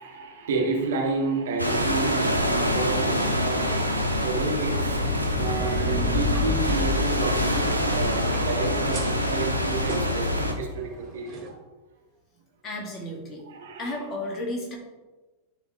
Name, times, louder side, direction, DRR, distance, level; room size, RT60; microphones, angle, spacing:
voice 1, 0.0-3.8 4.2-5.0 5.3-11.6 13.5-13.9, right 3 dB, 60° right, 0 dB, 1.5 m, -30 dB
sound 1, 1.6-10.5, equal, 90° left, 1.0 m, -25 dB
sound 2, 3.9-9.9, left 3 dB, ahead, 2.1 m, -33 dB
sound 3, 5.2-11.5, right 3 dB, 25° right, 2.3 m, -41 dB
voice 2, 12.6-13.4 13.8-14.8, left 1 dB, 30° left, -1 dB, 2.2 m, -33 dB
11.5 x 4.3 x 3.6 m, 1.2 s
figure-of-eight pair, 90°, 0 cm